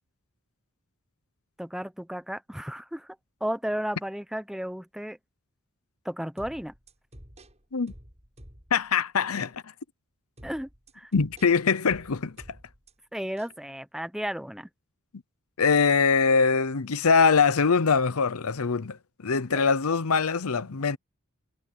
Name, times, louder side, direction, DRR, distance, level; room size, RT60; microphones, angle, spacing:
voice 1, 1.6-3.1 3.4-5.2 6.0-6.7 10.4-10.7 10.9-11.1 13.1-14.7 19.5-19.6, equal, ahead, 0.8 m, -33 dB
sound 1, 6.4-8.9 9.4-9.6 10.4-12.9 13.4-13.6, equal, 30° right, 6.9 m, -50 dB
voice 2, 8.7-9.7 11.1-12.4 15.6-21.0, left 5 dB, 70° left, 0.8 m, -23 dB
head